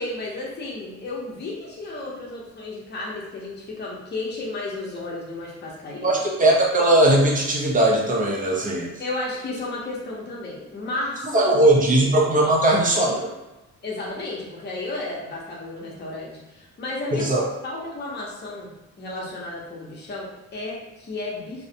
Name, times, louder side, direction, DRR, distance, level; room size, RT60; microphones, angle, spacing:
voice 1, 0.0-6.1 9.0-11.3 11.8-11.9 12.4-12.6 13.8-17.3 17.6-18.7 19.0-21.7, left 2 dB, 35° left, -4 dB, 0.8 m, -33 dB
voice 2, 6.0-8.9 11.3-13.3 17.1-17.4, right 1 dB, 25° right, -1 dB, 0.6 m, -19 dB
2.3 x 2.1 x 2.7 m, 1.1 s
cardioid pair, 90°, 30 cm